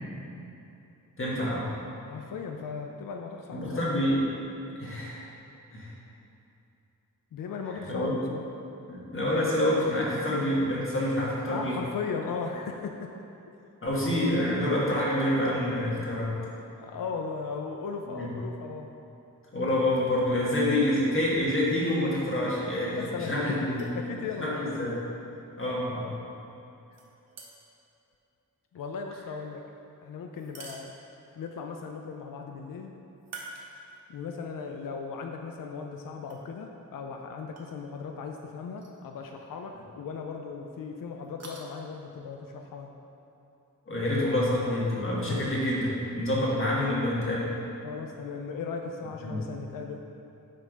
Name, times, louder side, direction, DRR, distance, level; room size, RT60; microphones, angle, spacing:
voice 1, 1.2-1.7 3.5-4.2 4.8-5.2 5.7-5.9 7.9-8.1 8.9-11.8 13.8-16.4 18.1-18.3 19.5-23.8 24.4-25.0 25.6-26.1 43.9-47.4 49.2-49.4, left 1 dB, 40° left, -6 dB, 1.5 m, -27 dB
voice 2, 2.1-3.8 7.3-8.5 11.5-13.1 16.8-19.0 22.9-24.6 28.7-29.6 30.0-30.9 31.4-32.9 34.1-42.9 44.4-44.6 46.4-46.5 47.8-50.1, left 5 dB, 75° left, 3 dB, 0.5 m, -37 dB
sound 1, 23.7-24.0 26.9-27.8 30.3-31.4 33.2-34.2 34.7-34.8 36.2-36.4 37.6-37.7 38.7-39.0 39.3-39.4 41.2-41.6, right 3 dB, 50° right, 0.8 m, -46 dB
8.0 x 3.3 x 5.1 m, 2.8 s
wide cardioid pair, 140°, 34 cm